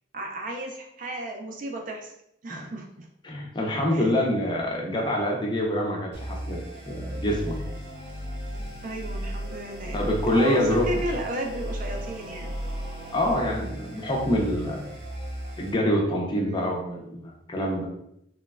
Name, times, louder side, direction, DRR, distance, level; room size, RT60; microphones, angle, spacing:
voice 1, 0.1-2.1 2.4-3.1 3.9-4.3 8.8-10.0 10.3-12.5 16.4-16.7, right 1 dB, 45° right, 2 dB, 0.4 m, -34 dB
voice 2, 3.2-6.6 6.9-7.6 9.9-11.0 13.1-14.9 15.6-17.9, left 1 dB, 25° left, -1 dB, 0.4 m, -26 dB
sound 1, 6.1-15.7, equal, 70° right, 0.8 m, -35 dB
3.0 x 2.2 x 2.3 m, 0.76 s
head